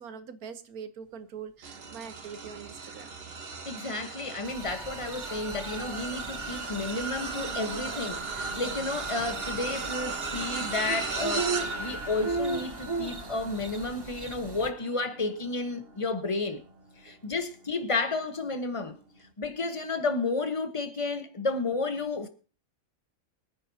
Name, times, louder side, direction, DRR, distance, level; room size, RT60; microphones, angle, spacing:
voice 1, 0.0-3.1 17.0-17.2, right 7 dB, 85° right, 1.5 m, -43 dB
sound 1, 1.6-17.1 17.7-17.9 19.2-19.3, right 4 dB, 45° right, 1.4 m, -37 dB
voice 2, 3.6-11.5 11.8-16.6 17.0-19.0 19.4-22.3, left 3 dB, 25° left, 1.1 m, -32 dB
sound 2, 4.4-14.7, right 3 dB, 20° right, 0.7 m, -38 dB
23.0 x 9.7 x 2.8 m
omnidirectional pair, 1.5 m